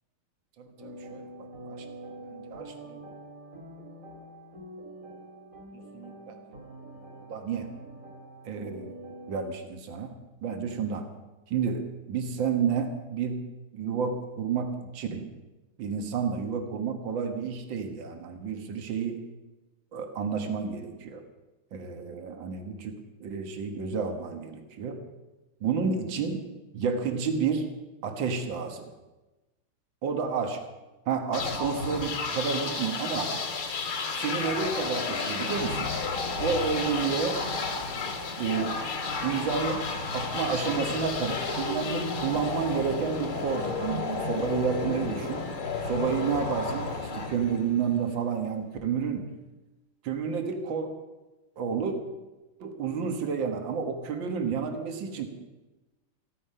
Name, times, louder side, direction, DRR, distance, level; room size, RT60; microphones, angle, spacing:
voice 1, 0.6-1.9 2.2-3.0 5.7-6.7 7.2-7.7 8.5-8.9 9.3-10.1 10.4-11.1 11.5-13.4 13.7-15.3 15.8-19.2 19.9-21.2 21.7-25.0 25.6-26.5 26.7-27.7 28.0-28.9 30.0-30.6 31.1-33.4 34.1-35.9 36.4-37.5 38.4-38.8 39.2-39.9 40.1-45.4 45.8-49.3 50.0-51.0 51.6-52.0 52.6-55.3, right 6 dB, 65° right, 5 dB, 2.2 m, -30 dB
sound 1, 0.8-9.5, right 1 dB, 40° right, 2.7 m, -45 dB
sound 2, 31.3-48.1, left 4 dB, 80° left, 3.2 m, -32 dB
15.0 x 14.0 x 5.6 m, 1.1 s
omnidirectional pair, 2.3 m